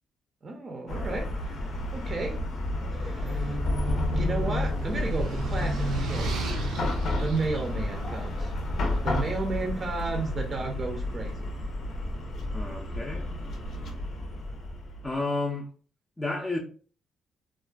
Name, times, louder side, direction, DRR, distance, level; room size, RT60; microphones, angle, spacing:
voice 1, 0.4-1.6 1.9-2.4 3.0-3.6 4.0-6.3 7.2-8.5 9.0-11.5, right 3 dB, 40° right, 0.5 m, -33 dB
Chatter / Car passing by / Traffic noise roadway noise, 0.9-15.2, left 1 dB, 65° left, 0.6 m, -31 dB
sound 1, 2.9-9.1, right 3 dB, 90° right, 0.6 m, -35 dB
voice 2, 12.5-13.3 15.0-15.7 16.2-16.6, left 2 dB, 15° left, 0.5 m, -31 dB
2.4 x 2.3 x 2.2 m
cardioid pair, 90°, 0 cm